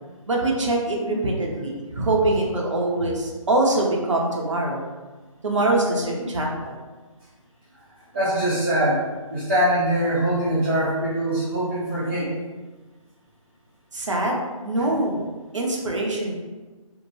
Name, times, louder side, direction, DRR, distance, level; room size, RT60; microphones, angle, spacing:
voice 1, 0.3-4.8 5.4-6.7 13.9-15.2 15.5-16.3, right 2 dB, 60° right, -1 dB, 0.7 m, -23 dB
voice 2, 8.1-12.3, right 1 dB, 25° right, -11 dB, 0.7 m, -23 dB
2.6 x 2.1 x 3.2 m, 1.3 s
figure-of-eight pair, 150°, 18 cm